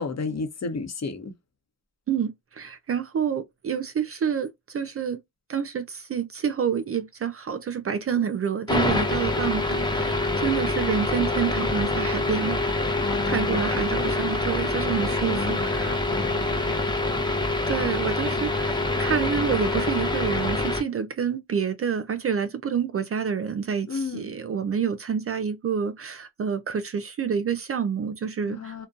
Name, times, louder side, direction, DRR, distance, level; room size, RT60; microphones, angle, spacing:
voice 1, 0.0-1.3 8.2-8.3 13.0-14.0 15.3-16.9 23.9-24.4 28.5-28.9, left 4 dB, 40° left, 0.9 m, -33 dB
voice 2, 2.1-5.2 5.5-16.0 17.7-28.9, right 7 dB, 35° right, 0.4 m, -28 dB
sound 1, 8.7-20.8, left 2 dB, 10° left, 0.8 m, -25 dB
2.5 x 2.2 x 2.4 m
cardioid pair, 70°, 40 cm